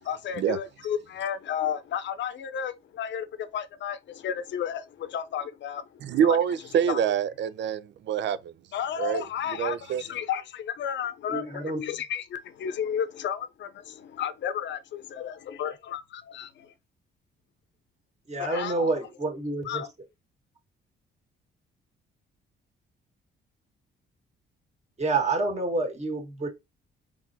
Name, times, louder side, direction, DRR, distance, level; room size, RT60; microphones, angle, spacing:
voice 1, 0.0-6.4 6.9-7.0 8.7-16.7 18.4-18.9 19.6-19.9, left 8 dB, 65° left, 0.7 m, -33 dB
voice 2, 6.0-8.5 9.0-9.2 9.6-10.0, right 8 dB, 65° right, 0.6 m, -26 dB
voice 3, 11.3-11.8 18.3-19.8 25.0-26.5, right 3 dB, 35° right, 1.8 m, -28 dB
4.5 x 4.1 x 2.8 m
cardioid pair, 90°, 20 cm